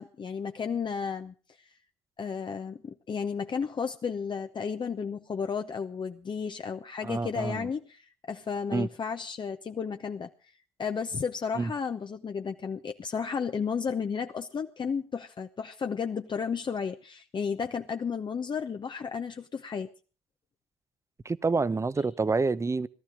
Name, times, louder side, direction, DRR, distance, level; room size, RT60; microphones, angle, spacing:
voice 1, 0.0-1.7 2.2-10.3 10.8-19.9, left 6 dB, 35° left, 0.9 m, -33 dB
voice 2, 7.0-7.7 8.7-8.9 11.6-11.7 21.2-22.9, right 4 dB, 20° right, 0.8 m, -28 dB
18.5 x 13.0 x 5.0 m
hypercardioid pair, 60°, 13 cm